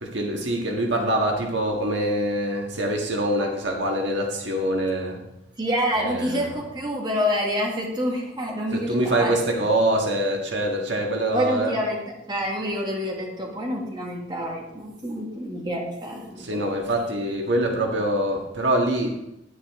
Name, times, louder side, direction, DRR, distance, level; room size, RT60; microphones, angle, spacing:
voice 1, 0.0-5.2 6.0-6.5 8.7-11.8 16.4-19.1, right 1 dB, 65° right, 1 dB, 1.6 m, -24 dB
voice 2, 5.6-9.6 11.3-12.0 12.3-16.6, equal, 25° right, -1 dB, 1.8 m, -27 dB
9.9 x 9.8 x 3.6 m, 0.89 s
head